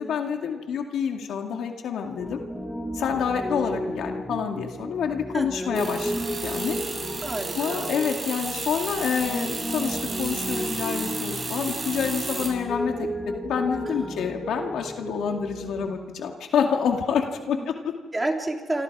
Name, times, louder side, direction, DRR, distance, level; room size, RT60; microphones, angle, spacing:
voice 1, 0.0-2.4 2.9-6.8 7.6-13.1 13.4-17.9, left 7 dB, 70° left, 3 dB, 2.3 m, -28 dB
Piano, 2.2-15.9, equal, 5° left, 4.6 m, -33 dB
voice 2, 5.3-5.8 7.2-7.9 13.9-14.1 17.5-17.7 18.1-18.8, right 2 dB, 15° right, 2 dB, 3.4 m, -30 dB
sound 1, 5.8-12.5, right 3 dB, 35° right, 7.7 m, -33 dB
27.0 x 26.5 x 4.9 m, 1.4 s
cardioid pair, 90°, 0 cm